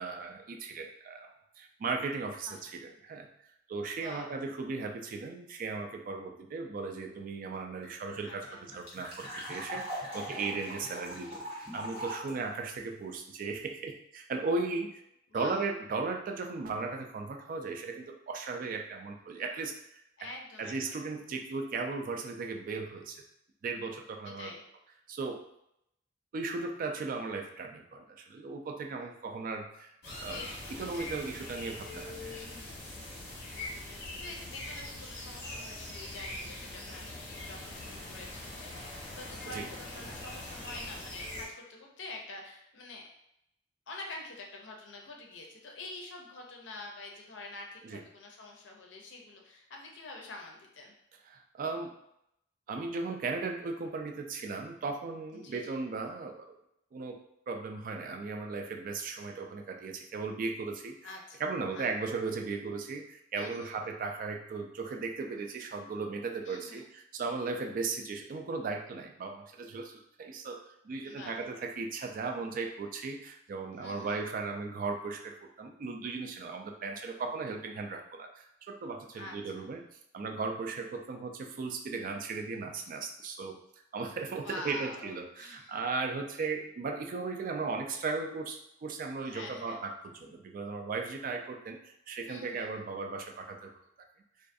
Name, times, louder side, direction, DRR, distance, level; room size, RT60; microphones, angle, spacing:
voice 1, 0.0-3.3 3.7-8.4 8.7-15.0 15.3-19.8 20.6-23.2 23.6-24.5 25.1-25.5 26.3-29.9 30.2-30.4 30.8-32.4 39.5-39.6 47.8-48.0 51.3-51.9 52.7-56.6 56.9-57.2 57.5-60.9 61.4-79.8 80.1-83.6 83.9-93.7, right 4 dB, 50° right, 3 dB, 0.3 m, -37 dB
voice 2, 3.9-4.4 8.2-8.6 10.1-10.6 15.3-15.6 20.2-21.0 24.4-24.6 30.1-31.3 32.2-32.9 33.5-43.1 43.9-50.9 55.3-55.8 61.0-61.5 61.7-61.9 63.3-63.8 66.4-66.9 71.0-71.4 73.7-74.2 79.2-79.7 84.4-85.8 89.2-89.8 92.2-92.7, left 2 dB, 80° left, 1 dB, 0.5 m, -47 dB
sound 1, 7.5-7.6 7.8-7.9 8.2-12.3, equal, 30° right, 0.9 m, -40 dB
sound 2, 30.0-41.5, left 1 dB, 60° left, 1.1 m, -42 dB
2.4 x 2.3 x 2.5 m, 0.78 s
head